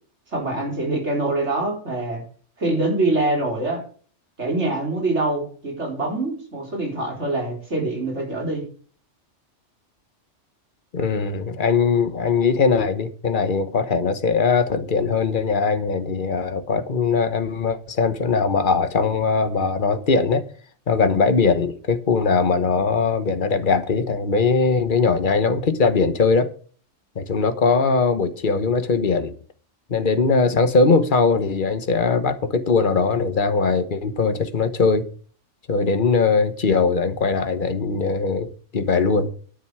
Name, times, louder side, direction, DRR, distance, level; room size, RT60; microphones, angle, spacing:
voice 1, 0.3-2.2 2.6-3.8 4.4-8.6, right 2 dB, 70° right, 4.4 m, -24 dB
voice 2, 10.9-20.4 20.9-26.5 27.1-29.3 29.9-35.1 35.7-39.3, left 4 dB, 45° left, 1.4 m, -20 dB
10.5 x 9.3 x 4.8 m
omnidirectional pair, 1.2 m